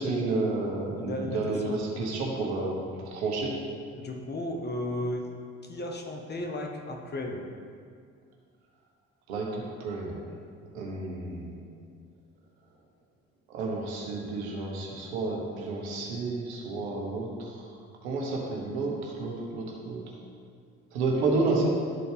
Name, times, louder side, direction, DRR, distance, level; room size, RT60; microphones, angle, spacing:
voice 1, 0.0-3.6 9.3-10.3 10.7-11.6 13.5-17.7 18.0-20.0 20.9-21.7, right 3 dB, 90° right, -1 dB, 1.3 m, -31 dB
voice 2, 1.0-1.8 4.0-5.3 5.6-7.4, left 1 dB, 30° left, 2 dB, 1.3 m, -34 dB
12.0 x 4.4 x 3.5 m, 2.1 s
hypercardioid pair, 60°, 32 cm